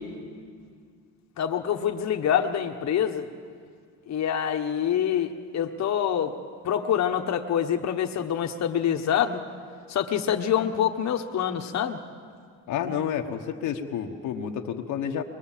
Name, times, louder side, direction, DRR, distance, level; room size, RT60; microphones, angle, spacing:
voice 1, 1.4-3.3 4.1-6.3 6.6-9.4 9.9-12.0, left 9 dB, 65° left, 4 dB, 1.2 m, -26 dB
voice 2, 12.7-15.2, left 8 dB, 85° left, 3 dB, 1.3 m, -30 dB
23.0 x 21.5 x 7.4 m, 2.1 s
cardioid pair, 90°, 30 cm